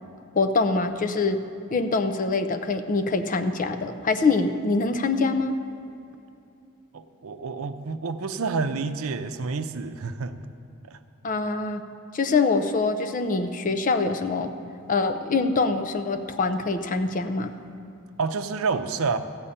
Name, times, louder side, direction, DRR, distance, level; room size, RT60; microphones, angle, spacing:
voice 1, 0.3-1.4 1.7-5.5 11.2-11.8 12.1-14.5 14.9-17.5, left 3 dB, 40° left, 8 dB, 0.6 m, -24 dB
voice 2, 6.9-10.4 10.9-11.0 18.2-19.2, right 4 dB, 75° right, 10 dB, 0.6 m, -28 dB
14.5 x 5.5 x 8.7 m, 2.6 s
head